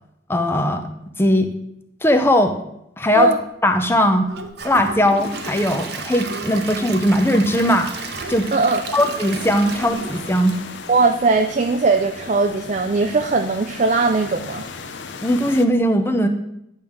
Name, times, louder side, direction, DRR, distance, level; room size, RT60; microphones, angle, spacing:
voice 1, 0.3-0.9 1.2-1.5 2.0-2.6 3.0-3.3 3.6-4.3 4.6-7.9 8.3-8.5 8.9-10.5 15.2-16.3, equal, 10° left, 6 dB, 0.6 m, -18 dB
Dog, 4.0-4.5 4.8-5.6 5.9-6.9 7.6-8.4 8.9-9.1 9.7-10.1 10.4-10.5, right 2 dB, 90° right, 1.0 m, -39 dB
Gurgling / Toilet flush / Trickle dribble, 4.3-11.4 11.8-11.9 12.4-12.5, right 4 dB, 55° right, 0.8 m, -34 dB
sound 1, 5.2-15.7, left 5 dB, 60° left, 0.6 m, -37 dB
voice 2, 8.5-8.8 10.9-14.7, right 3 dB, 35° right, 5 dB, 0.4 m, -19 dB
10.5 x 3.6 x 6.3 m, 0.82 s
head